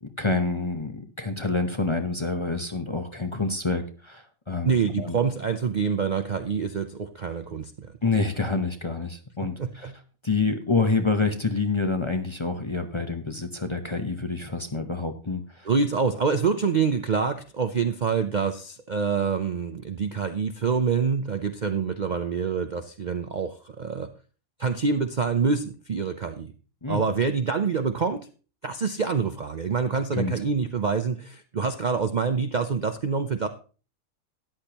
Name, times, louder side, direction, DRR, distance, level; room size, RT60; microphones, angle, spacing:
voice 1, 0.0-4.7 5.0-5.2 8.0-9.9 10.2-15.7 26.8-27.0 30.1-30.3, left 3 dB, 25° left, 6 dB, 0.7 m, -27 dB
voice 2, 4.6-7.9 9.4-9.9 15.7-24.1 24.6-26.5 26.9-28.3 28.6-33.5, right 5 dB, 45° right, 8 dB, 0.6 m, -26 dB
13.5 x 10.5 x 2.9 m, 0.37 s
omnidirectional pair, 1.5 m